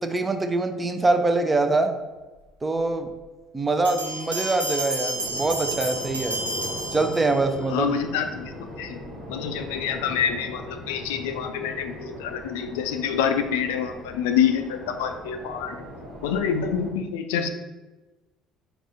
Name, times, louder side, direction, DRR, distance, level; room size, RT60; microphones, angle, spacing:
voice 1, 0.0-2.0 2.6-3.1 3.5-6.4 6.9-7.9, right 2 dB, 20° right, 6 dB, 0.5 m, -24 dB
Bell, 3.8-7.6, right 1 dB, 90° right, 0.5 m, -31 dB
sound 1, 5.1-16.9, equal, 55° right, 1.1 m, -39 dB
voice 2, 7.7-9.0 9.3-15.8 16.2-17.5, left 7 dB, 70° left, 7 dB, 0.3 m, -27 dB
4.8 x 2.3 x 3.8 m, 1.2 s
figure-of-eight pair, 55°, 0 cm